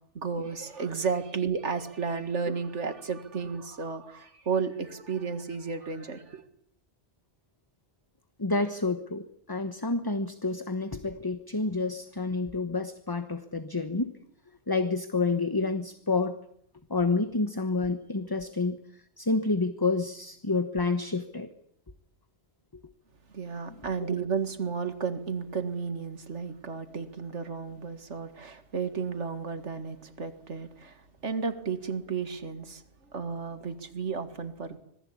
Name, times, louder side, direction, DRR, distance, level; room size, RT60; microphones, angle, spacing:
voice 1, 0.0-6.4 23.3-32.8 33.1-34.8, right 5 dB, 85° right, 2.2 m, -33 dB
voice 2, 8.4-14.1 14.7-16.4 16.9-18.8 19.2-21.5 24.0-24.1, left 3 dB, 20° left, 1.1 m, -29 dB
26.0 x 19.5 x 8.6 m
omnidirectional pair, 1.2 m